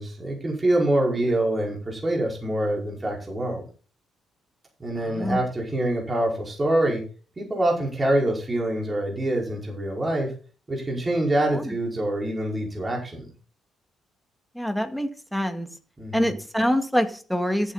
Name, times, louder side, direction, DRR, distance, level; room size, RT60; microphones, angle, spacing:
voice 1, 0.0-3.6 4.8-7.0 7.4-10.3 10.7-13.3 16.0-16.1, right 1 dB, 25° right, -1 dB, 4.9 m, -25 dB
voice 2, 5.0-5.4 11.5-11.7 14.5-15.8 16.1-17.7, equal, ahead, 7 dB, 2.0 m, -25 dB
14.0 x 8.4 x 4.2 m, 0.37 s
cardioid pair, 90°, 0 cm